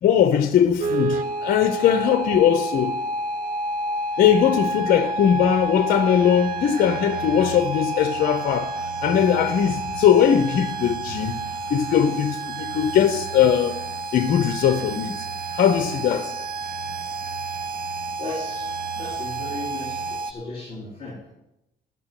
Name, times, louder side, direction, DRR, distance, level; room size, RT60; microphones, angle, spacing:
voice 1, 0.0-3.0 4.2-8.8 9.0-11.4 11.7-13.8 14.1-15.3 15.5-16.3, left 9 dB, 60° left, 0.8 m, -20 dB
sound 1, 0.8-20.3, right 2 dB, 55° right, 0.9 m, -29 dB
voice 2, 18.2-18.7 18.9-21.3, left 2 dB, 35° left, 4.4 m, -35 dB
11.5 x 6.1 x 9.0 m
cardioid pair, 110°, 17 cm